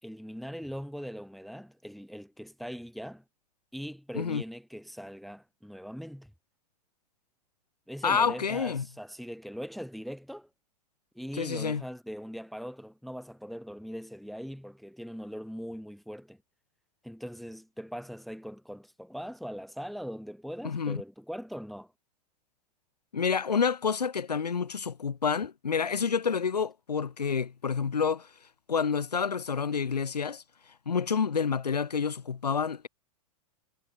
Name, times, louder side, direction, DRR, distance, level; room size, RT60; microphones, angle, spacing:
voice 1, 0.0-3.2 3.7-6.3 7.9-10.5 11.1-16.4 17.0-21.9, equal, ahead, 2.1 m, -41 dB
voice 2, 8.0-8.8 11.4-11.8 20.6-21.0 23.1-28.3 28.7-30.4 30.9-32.9, left 6 dB, 85° left, 0.7 m, -28 dB
figure-of-eight pair, 95°, 20 cm